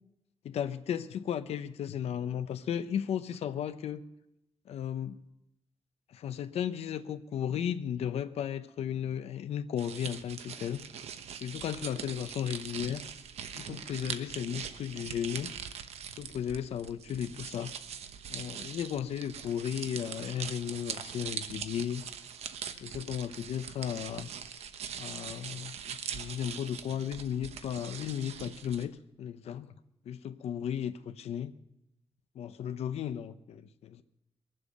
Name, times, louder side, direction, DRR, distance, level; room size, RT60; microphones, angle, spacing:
voice 1, 0.4-4.0 4.7-5.2 6.1-10.8 11.4-13.0 13.6-15.5 16.2-17.7 18.3-22.0 22.8-24.3 25.0-29.7 30.1-31.5 32.3-34.0, left 9 dB, 75° left, 0.8 m, -35 dB
sound 1, 9.8-28.8, right 8 dB, 80° right, 1.0 m, -42 dB
23.0 x 7.7 x 6.6 m
wide cardioid pair, 155°, 11 cm